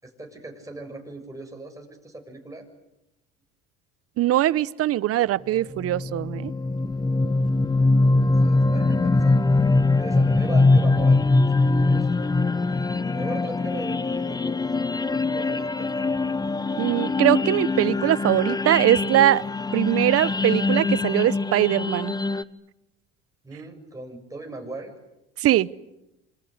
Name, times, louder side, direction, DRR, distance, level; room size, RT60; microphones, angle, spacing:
voice 1, 0.0-2.7 7.6-9.4 9.9-12.3 13.1-15.9 23.4-25.0, right 2 dB, 10° right, 2 dB, 7.0 m, -39 dB
voice 2, 4.2-6.5 16.8-19.4 19.7-22.1 25.4-25.7, right 13 dB, 50° right, 20 dB, 0.9 m, -21 dB
sound 1, 5.7-22.4, left 3 dB, 15° left, 1.0 m, -22 dB
26.5 x 25.5 x 8.1 m, 0.92 s
hypercardioid pair, 80°, 30 cm